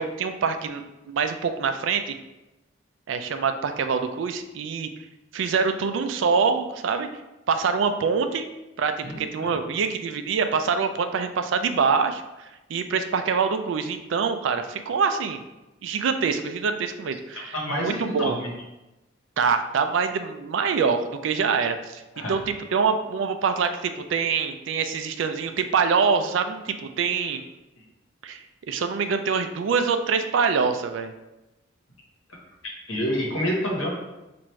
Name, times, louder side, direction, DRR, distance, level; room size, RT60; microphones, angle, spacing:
voice 1, 0.0-2.2 3.1-4.9 5.3-7.1 7.5-8.5 8.8-15.4 15.8-18.4 19.4-27.4 28.2-28.4 28.7-31.1, right 5 dB, 70° right, 8 dB, 0.3 m, -25 dB
voice 2, 9.0-9.5 17.3-18.5 22.1-22.4 27.2-27.3 32.9-33.9, equal, 85° left, -2 dB, 1.1 m, -28 dB
4.5 x 2.5 x 3.1 m, 1.0 s
head